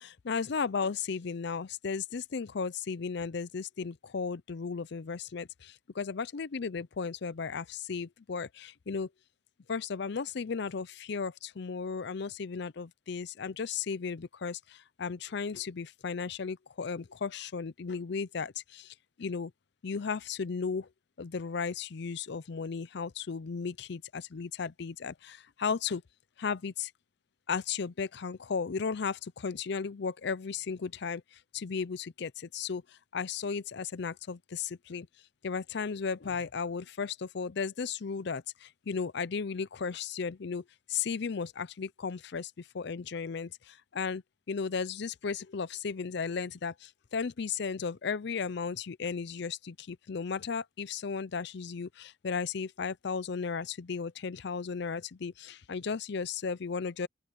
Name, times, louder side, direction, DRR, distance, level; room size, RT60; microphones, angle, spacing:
voice 1, 0.0-9.1 9.7-19.5 19.8-20.9 21.2-26.0 26.4-26.9 27.5-35.1 35.4-57.1, left 5 dB, 60° left, 0.5 m, -35 dB
open air
head